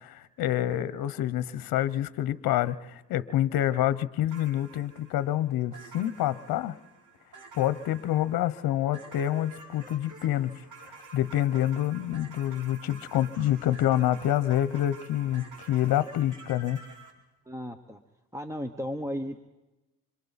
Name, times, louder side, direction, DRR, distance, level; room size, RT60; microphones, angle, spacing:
voice 1, 0.0-6.8 7.5-16.8, left 12 dB, 65° left, 16 dB, 0.9 m, -27 dB
sound 1, 4.3-17.1, right 4 dB, 50° right, 4.4 m, -49 dB
voice 2, 17.5-18.0 18.3-19.4, equal, 10° right, 8 dB, 1.1 m, -34 dB
26.5 x 26.5 x 4.2 m, 1.0 s
cardioid pair, 95°, 38 cm